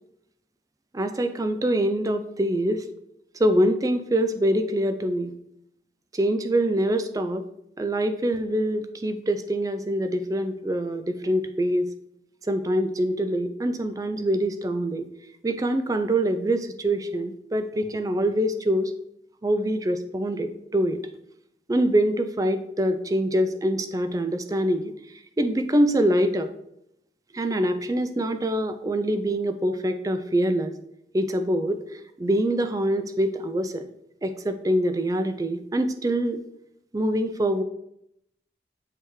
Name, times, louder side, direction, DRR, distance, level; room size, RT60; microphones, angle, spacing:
voice 1, 0.9-2.8 3.3-5.4 6.1-7.4 7.8-11.9 12.5-15.1 15.4-18.9 19.4-21.0 21.7-24.9 25.4-26.5 27.3-30.7 31.1-33.8 34.2-36.4 36.9-37.6, right 1 dB, 20° right, 8 dB, 0.4 m, -24 dB
9.2 x 3.3 x 3.1 m, 0.78 s
head